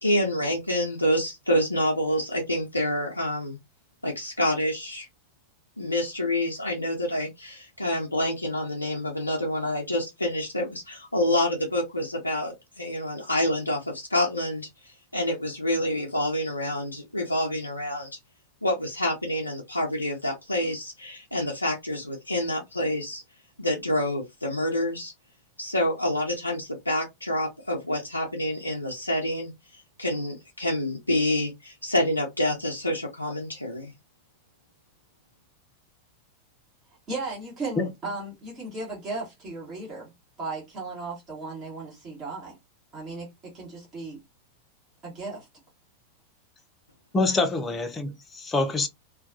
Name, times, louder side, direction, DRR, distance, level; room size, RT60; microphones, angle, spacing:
voice 1, 0.0-3.6 4.0-5.1 5.8-14.7 15.1-18.1 18.6-23.2 23.6-25.1 25.6-29.5 30.0-33.9, left 1 dB, 85° left, 0.4 m, -27 dB
voice 2, 37.1-40.1 40.4-42.5 42.9-43.3 43.5-44.2 45.0-45.5, right 3 dB, 30° right, 1.0 m, -35 dB
voice 3, 47.1-48.9, left 3 dB, 20° left, 0.5 m, -25 dB
2.3 x 2.2 x 2.5 m
figure-of-eight pair, 90°, 0 cm